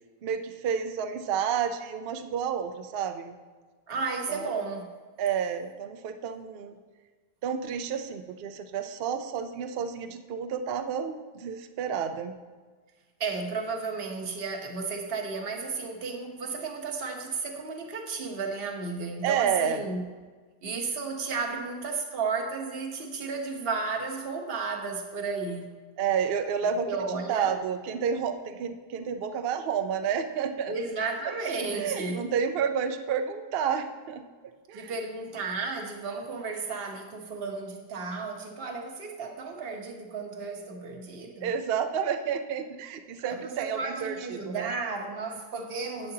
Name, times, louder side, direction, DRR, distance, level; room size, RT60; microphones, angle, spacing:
voice 1, 0.2-3.4 4.3-4.5 5.2-6.7 7.4-12.3 19.2-20.0 26.0-26.9 27.3-30.7 31.7-34.2 34.7-34.9 41.4-44.7, right 7 dB, 60° right, 8 dB, 0.6 m, -30 dB
voice 2, 3.9-4.9 13.2-20.0 20.6-25.8 26.9-27.6 30.7-32.3 34.7-41.5 43.2-46.1, right 4 dB, 40° right, 2 dB, 1.2 m, -33 dB
11.0 x 8.5 x 2.8 m, 1.4 s
omnidirectional pair, 1.7 m